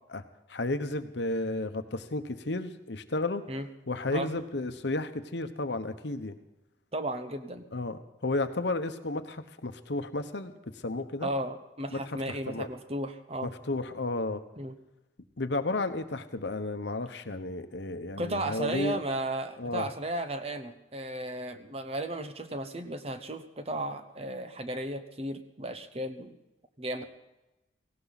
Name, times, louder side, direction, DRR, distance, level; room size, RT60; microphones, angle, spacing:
voice 1, 0.5-3.4 3.9-6.3 7.7-10.5 10.8-11.3 11.9-12.0 12.3-12.7 13.4-14.4 15.4-19.0 19.6-19.9, left 2 dB, 65° left, 9 dB, 1.0 m, -32 dB
voice 2, 6.9-7.7 11.2-13.5 14.6-14.8 18.2-26.3 26.8-27.0, right 1 dB, 35° right, 8 dB, 1.0 m, -34 dB
18.0 x 17.0 x 4.1 m, 0.97 s
head